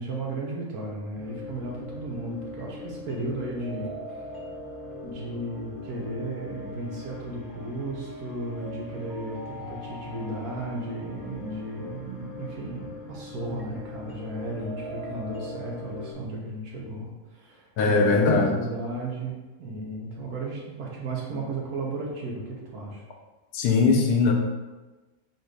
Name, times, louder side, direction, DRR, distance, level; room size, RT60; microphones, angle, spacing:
voice 1, 0.0-4.2 5.0-18.2 18.5-23.0, right 2 dB, 75° right, -2 dB, 1.5 m, -34 dB
sound 1, 1.1-16.1, left 1 dB, 10° left, 1.4 m, -41 dB
voice 2, 17.8-18.6 23.5-24.3, left 4 dB, 90° left, 2 dB, 1.2 m, -20 dB
4.1 x 2.6 x 4.7 m, 1.2 s
omnidirectional pair, 1.6 m